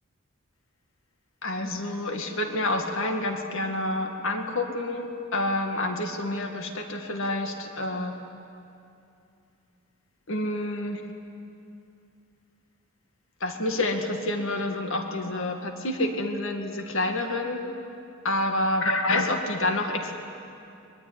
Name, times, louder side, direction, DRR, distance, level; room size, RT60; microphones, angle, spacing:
voice 1, 1.4-8.1 10.3-11.0 13.4-17.6 18.2-20.1, left 2 dB, 60° left, 4 dB, 2.1 m, -28 dB
24.5 x 23.0 x 9.7 m, 2.6 s
head